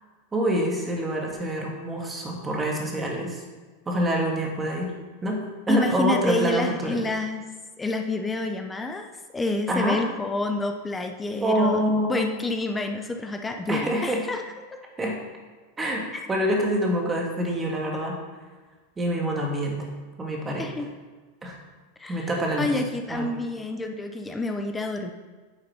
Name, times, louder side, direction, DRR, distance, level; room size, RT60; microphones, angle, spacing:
voice 1, 0.3-3.4 3.9-4.9 5.2-7.0 9.7-10.0 11.4-12.2 13.7-14.2 15.0-15.2 15.8-16.0 16.3-18.2 19.0-19.9 20.2-20.7 21.4-21.6 22.1-22.7 23.1-23.3, equal, 15° right, 0 dB, 1.5 m, -26 dB
voice 2, 5.7-7.4 7.8-9.1 9.3-11.8 12.1-14.4 16.1-16.3 20.6-20.9 22.0-22.3 22.6-25.1, left 2 dB, 10° left, 5 dB, 0.5 m, -28 dB
8.9 x 6.7 x 4.2 m, 1.4 s
supercardioid pair, 155°, 0 cm